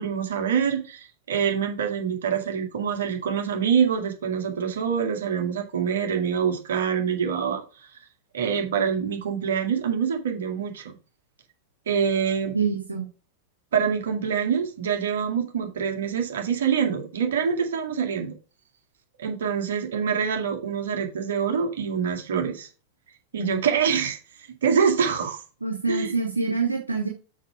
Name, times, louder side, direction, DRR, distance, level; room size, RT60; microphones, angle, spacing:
voice 1, 0.0-7.6 8.3-10.9 11.9-12.6 13.7-18.3 19.2-22.7 23.3-24.2 24.6-25.4 25.9-26.1, right 7 dB, 60° right, 3 dB, 2.2 m, -25 dB
voice 2, 12.5-13.0 23.4-23.6 25.6-27.1, right 4 dB, 85° right, 1 dB, 1.5 m, -26 dB
6.5 x 5.9 x 4.9 m, 0.35 s
figure-of-eight pair, 90°, 0 cm